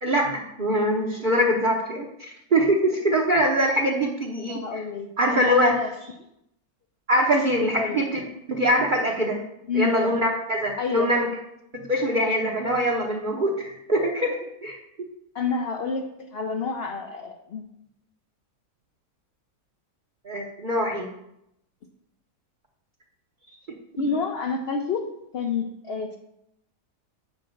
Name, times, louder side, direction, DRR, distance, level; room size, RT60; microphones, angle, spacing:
voice 1, 0.0-4.6 5.2-5.8 7.1-8.2 8.5-9.4 9.7-11.3 11.8-15.1 20.2-21.1, equal, 40° right, -3 dB, 0.9 m, -23 dB
voice 2, 4.5-5.9 7.7-8.0 9.7-10.0 10.8-11.1 15.3-17.6 23.4-23.6 24.0-25.1 25.3-26.2, left 5 dB, 55° left, 3 dB, 0.7 m, -29 dB
8.1 x 3.8 x 6.3 m, 0.81 s
omnidirectional pair, 1.7 m